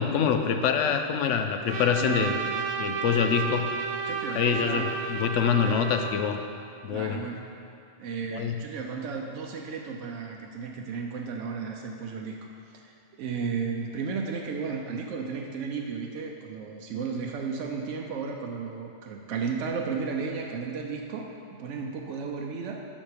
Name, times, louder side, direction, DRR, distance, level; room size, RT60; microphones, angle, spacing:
voice 1, 0.0-2.4 2.8-3.8 4.3-6.4 6.8-7.2 8.3-8.6, left 7 dB, 85° left, 6 dB, 0.9 m, -25 dB
Trumpet, 1.7-6.4, right 5 dB, 55° right, 0.5 m, -32 dB
voice 2, 2.0-2.5 4.0-4.9 5.5-5.8 6.9-7.4 8.0-22.8, right 5 dB, 85° right, 1 dB, 0.9 m, -34 dB
7.3 x 5.2 x 5.0 m, 2.5 s
omnidirectional pair, 1.2 m